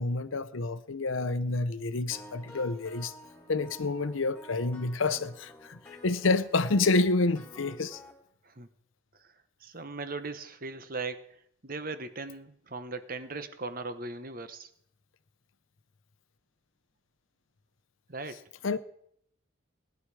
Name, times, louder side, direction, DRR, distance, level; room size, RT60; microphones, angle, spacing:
voice 1, 0.0-3.1 3.5-8.0 18.6-18.8, left 3 dB, 75° left, 0.8 m, -28 dB
sound 1, 2.1-8.1, left 1 dB, 10° left, 2.5 m, -51 dB
voice 2, 9.6-11.2 11.6-14.7 18.1-18.4, right 3 dB, 45° right, 1.0 m, -38 dB
18.5 x 10.5 x 4.8 m
head